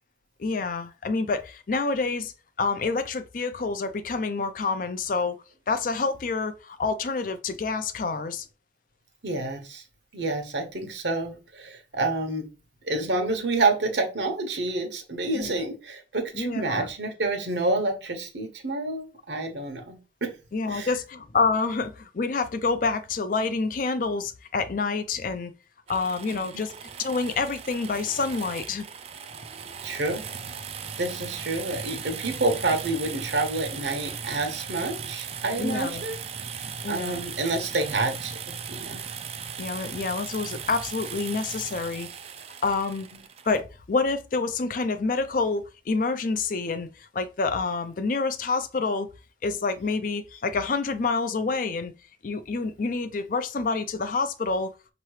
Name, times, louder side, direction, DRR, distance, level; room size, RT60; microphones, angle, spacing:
voice 1, 0.4-2.3 2.6-5.4 5.7-8.5 15.3-15.6 16.3-16.9 20.5-25.5 25.9-26.7 27.0-28.9 35.6-36.1 36.8-37.3 39.6-42.1 42.6-43.1 43.5-46.9 47.1-49.1 49.4-51.9 52.2-54.7, left 4 dB, 50° left, 0.4 m, -27 dB
voice 2, 9.2-9.8 10.1-12.5 12.8-20.3 20.7-20.9 26.3-26.6 29.8-30.3 31.0-36.2 36.5-39.0 43.1-43.2, right 2 dB, 75° right, 1.1 m, -28 dB
sound 1, 25.9-43.6, right 6 dB, 35° right, 0.4 m, -38 dB
5.6 x 2.9 x 3.1 m
head